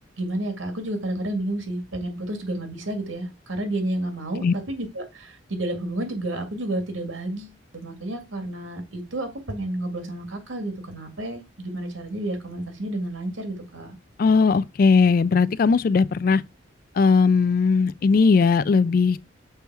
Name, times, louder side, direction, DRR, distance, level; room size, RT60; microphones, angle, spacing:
voice 1, 0.2-14.0, right 1 dB, 85° right, 2.0 m, -31 dB
voice 2, 14.2-16.4 17.0-19.2, left 4 dB, 45° left, 0.3 m, -18 dB
6.9 x 4.5 x 4.6 m
head